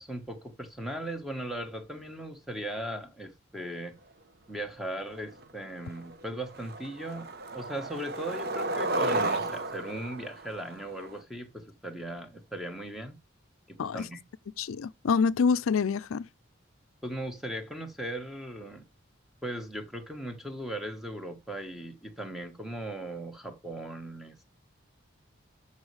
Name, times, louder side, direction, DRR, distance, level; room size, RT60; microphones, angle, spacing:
voice 1, 0.0-4.0 4.5-13.1 13.7-14.2 17.0-18.8 19.4-24.4, right 1 dB, ahead, 1.2 m, -38 dB
Skateboard, 5.4-5.5 5.9-6.2 6.5-11.2, right 2 dB, 50° right, 0.9 m, -33 dB
voice 2, 14.6-16.3, left 5 dB, 85° left, 0.4 m, -26 dB
13.5 x 5.4 x 3.2 m
head